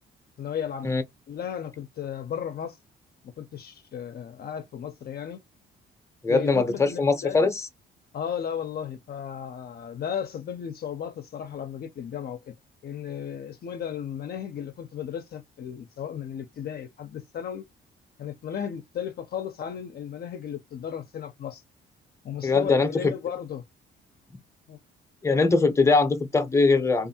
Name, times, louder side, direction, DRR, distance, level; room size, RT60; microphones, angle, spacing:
voice 1, 0.4-1.0 1.3-2.8 3.4-5.4 6.3-7.5 8.1-12.5 12.8-17.6 18.2-21.6 22.2-23.6 24.7-24.8, left 8 dB, 50° left, 0.5 m, -35 dB
voice 2, 6.2-7.7 22.4-23.1 25.2-27.1, left 3 dB, 15° left, 0.7 m, -22 dB
2.6 x 2.4 x 2.7 m
cardioid pair, 90°, 20 cm